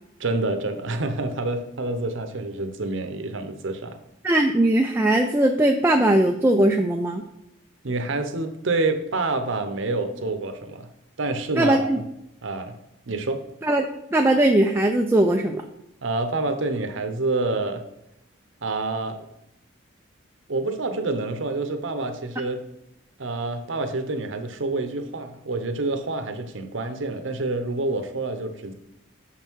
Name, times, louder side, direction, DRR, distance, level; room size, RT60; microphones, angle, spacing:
voice 1, 0.2-4.0 7.8-10.9 11.2-12.0 12.4-12.7 13.1-13.5 16.0-17.8 18.6-19.3 20.5-22.6 23.2-28.7, right 2 dB, 65° right, 8 dB, 0.8 m, -27 dB
voice 2, 4.2-7.2 11.6-12.0 13.6-15.6, right 1 dB, 10° right, 3 dB, 0.3 m, -20 dB
6.6 x 5.5 x 4.6 m, 0.82 s
head